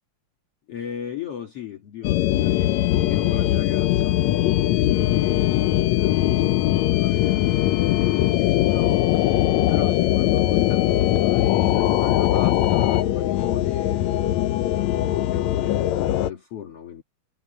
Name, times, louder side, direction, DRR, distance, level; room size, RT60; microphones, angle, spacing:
voice 1, 0.7-4.2 4.5-14.7 15.0-17.0, left 9 dB, 55° left, 2.4 m, -37 dB
sound 1, 2.0-16.3, left 14 dB, 75° left, 1.9 m, -21 dB
omnidirectional pair, 3.5 m